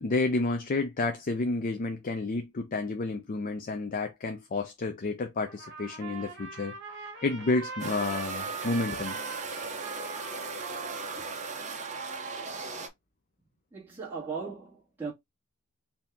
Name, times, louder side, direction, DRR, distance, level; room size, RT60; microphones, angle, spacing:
voice 1, 0.0-6.7 7.2-9.2, left 3 dB, 40° left, 0.5 m, -30 dB
Trumpet, 5.4-12.2, right 4 dB, 55° right, 1.5 m, -42 dB
sound 1, 7.8-12.9, right 4 dB, 35° right, 0.9 m, -37 dB
voice 2, 13.7-15.1, right 5 dB, 10° right, 2.0 m, -37 dB
4.4 x 2.8 x 3.5 m
head